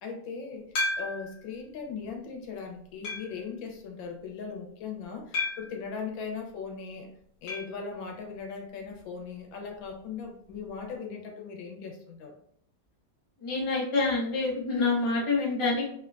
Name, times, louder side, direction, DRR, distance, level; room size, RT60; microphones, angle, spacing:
voice 1, 0.0-0.6 1.0-7.1 7.4-12.4, left 5 dB, 90° left, 2 dB, 1.5 m, -39 dB
sound 1, 0.8-1.4 2.1-2.2 3.0-3.4 5.3-5.8 7.5-7.8 8.0-8.1 8.4-8.5 10.5-10.6, left 2 dB, 60° left, 1.3 m, -32 dB
voice 2, 13.4-15.8, left 3 dB, 30° left, -5 dB, 0.5 m, -27 dB
3.5 x 2.2 x 2.4 m, 0.66 s
omnidirectional pair, 2.1 m